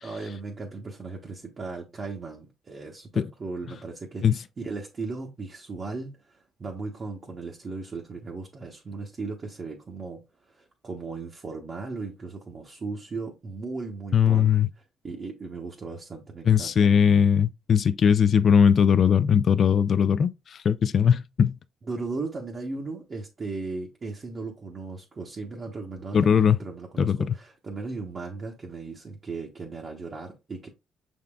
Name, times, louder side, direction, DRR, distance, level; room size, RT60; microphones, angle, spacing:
voice 1, 0.0-14.5 15.0-16.9 21.8-30.7, right 3 dB, 40° right, 0.8 m, -37 dB
voice 2, 14.1-14.7 16.5-20.3 20.6-21.6 26.1-26.6 27.0-27.2, left 7 dB, 50° left, 0.3 m, -19 dB
5.7 x 3.6 x 2.2 m
cardioid pair, 90°, 0 cm